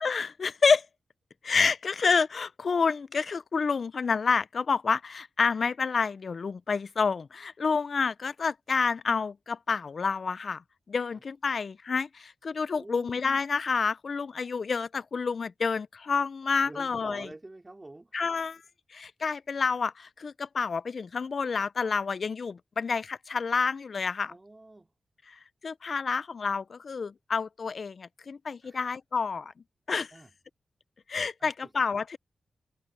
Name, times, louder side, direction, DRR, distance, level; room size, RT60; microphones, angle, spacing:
voice 1, 0.0-0.9 1.4-10.6 10.9-17.3 18.1-18.6 18.9-24.3 25.6-29.5 29.9-30.1 31.1-32.2, left 5 dB, 60° left, 0.5 m, -28 dB
voice 2, 12.8-13.2 16.6-18.3 24.3-24.9 28.6-28.8 30.1-30.3 31.4-31.7, right 2 dB, 20° right, 4.0 m, -47 dB
wide cardioid pair, 95°, 0 cm